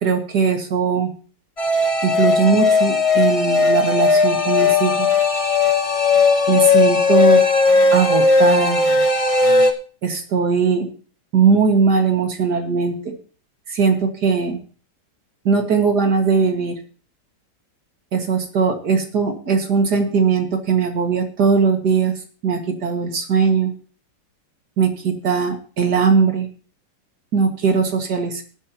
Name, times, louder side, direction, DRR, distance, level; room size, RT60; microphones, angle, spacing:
voice 1, 0.0-1.1 2.0-5.1 6.5-7.4 7.9-8.8 10.0-10.9 11.3-13.1 13.7-14.6 15.4-16.7 18.1-22.1 22.4-23.7 24.8-26.5 27.3-28.4, right 5 dB, 65° right, 4 dB, 2.4 m, -19 dB
sound 1, 1.6-9.7, left 4 dB, 25° left, 0.9 m, -16 dB
18.5 x 9.7 x 2.9 m, 0.39 s
omnidirectional pair, 1.9 m